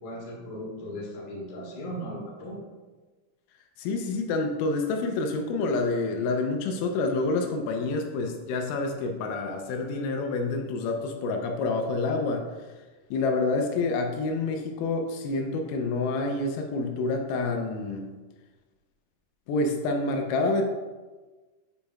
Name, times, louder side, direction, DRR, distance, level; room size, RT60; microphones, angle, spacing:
voice 1, 0.0-2.6, equal, 60° left, -5 dB, 2.2 m, -37 dB
voice 2, 3.8-12.5 13.1-18.1 19.5-20.6, left 3 dB, 85° left, 3 dB, 3.3 m, -28 dB
8.6 x 5.1 x 2.4 m, 1.3 s
omnidirectional pair, 6.0 m